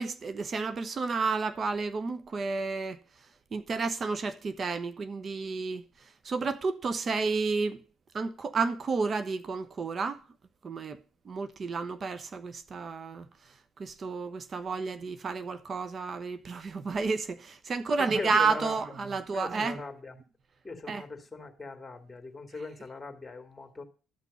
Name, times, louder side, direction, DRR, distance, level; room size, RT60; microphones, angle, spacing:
voice 1, 0.0-3.0 3.5-5.8 6.2-7.8 8.1-10.2 10.6-11.0 11.2-13.3 13.8-19.9 20.9-21.0, right 4 dB, 45° right, 1.1 m, -31 dB
voice 2, 17.9-18.8 19.3-20.1 20.6-23.8, left 3 dB, 20° left, 2.4 m, -40 dB
12.5 x 6.1 x 5.4 m
hypercardioid pair, 55°, 0 cm